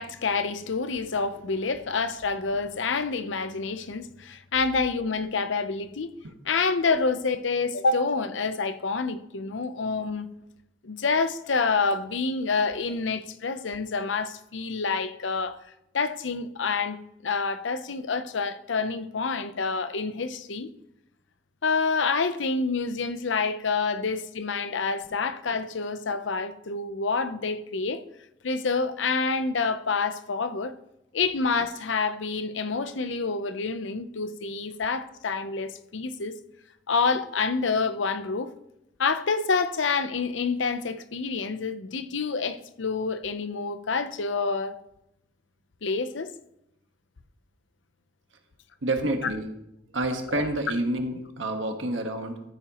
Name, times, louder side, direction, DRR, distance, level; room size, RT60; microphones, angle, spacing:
voice 1, 0.0-6.1 6.4-10.3 10.8-15.6 15.9-17.0 17.2-20.7 21.6-28.0 28.4-30.7 31.1-36.3 36.9-38.5 39.0-44.8 45.8-46.3 50.3-50.4, left 4 dB, 80° left, 0.7 m, -27 dB
voice 2, 48.8-49.5 49.9-52.4, right 1 dB, 90° right, 1.4 m, -28 dB
14.0 x 8.8 x 3.0 m
head